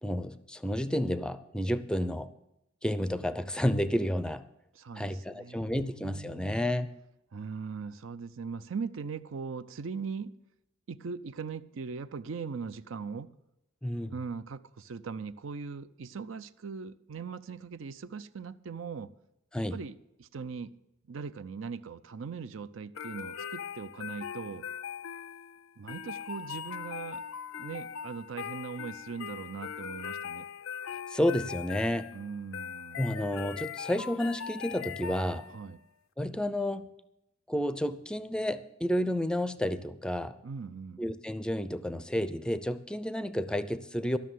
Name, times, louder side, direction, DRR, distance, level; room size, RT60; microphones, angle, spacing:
voice 1, 0.0-2.3 2.8-4.4 5.0-6.9 13.8-14.1 19.5-19.8 31.1-32.1 33.0-35.5 36.2-36.9 37.5-40.4 41.0-44.2, equal, 5° left, 0.5 m, -31 dB
voice 2, 4.8-6.6 7.3-10.3 10.9-13.3 14.1-19.1 19.7-20.7 21.1-24.7 25.8-27.2 27.6-30.5 32.1-33.1 35.5-35.8 40.4-41.0, right 5 dB, 70° right, 0.5 m, -40 dB
sound 1, 23.0-35.8, left 8 dB, 85° left, 0.5 m, -40 dB
13.0 x 6.4 x 9.2 m
head